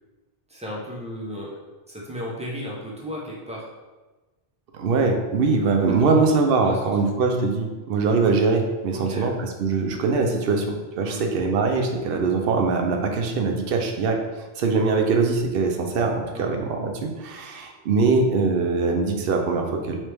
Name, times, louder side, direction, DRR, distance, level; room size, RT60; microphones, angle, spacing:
voice 1, 0.5-1.6 1.9-3.7 6.0-6.2 6.6-7.0 8.9-9.4 11.0-11.2 16.3-16.6, equal, 10° right, -4 dB, 0.5 m, -34 dB
voice 2, 4.7-20.0, right 4 dB, 65° right, 3 dB, 0.7 m, -22 dB
3.2 x 3.0 x 3.3 m, 1.2 s
omnidirectional pair, 1.1 m